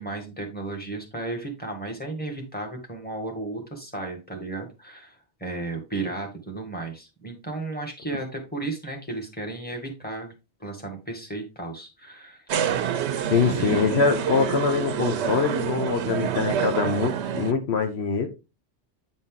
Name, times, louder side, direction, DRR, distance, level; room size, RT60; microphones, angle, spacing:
voice 1, 0.0-10.3 10.6-12.5 13.4-13.9, right 2 dB, 10° left, 1.8 m, -34 dB
sound 1, 12.5-17.5, right 8 dB, 85° right, 0.9 m, -27 dB
voice 2, 13.3-18.3, left 5 dB, 75° left, 1.2 m, -24 dB
8.9 x 4.1 x 3.8 m
omnidirectional pair, 1.1 m